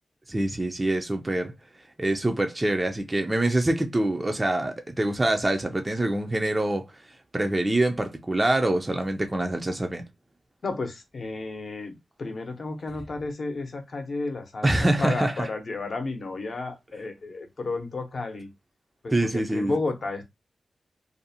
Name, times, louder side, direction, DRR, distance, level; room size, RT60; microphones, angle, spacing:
voice 1, 0.3-1.5 2.0-6.8 7.3-10.0 14.6-15.5 19.1-19.8, right 1 dB, 20° right, 0.3 m, -25 dB
voice 2, 10.6-18.5 19.0-20.2, left 3 dB, 55° left, 0.7 m, -32 dB
2.5 x 2.0 x 2.7 m
wide cardioid pair, 90°, 0 cm